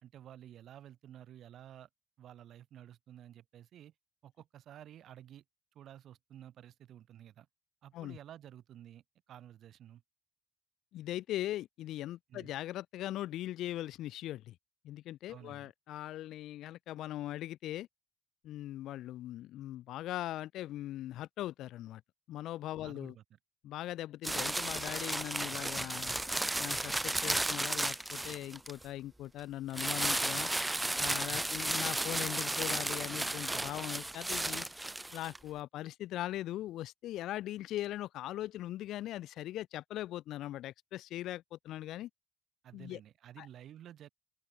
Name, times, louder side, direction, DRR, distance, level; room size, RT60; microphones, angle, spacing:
voice 1, 0.0-1.9 2.2-3.9 4.2-5.4 5.7-7.5 7.8-10.0 12.3-12.5 15.3-15.7 22.8-23.4 31.3-31.5 42.6-44.1, right 11 dB, 70° right, 3.3 m, -52 dB
voice 2, 10.9-14.6 14.8-17.9 18.4-22.0 22.3-23.1 23.6-26.2 26.6-30.5 31.0-34.7 35.1-42.1 42.7-43.0 43.4-43.5, left 14 dB, 85° left, 0.5 m, -40 dB
sound 1, 24.2-28.8 29.7-35.4, right 2 dB, 10° right, 0.5 m, -34 dB
open air
cardioid pair, 90°, 0 cm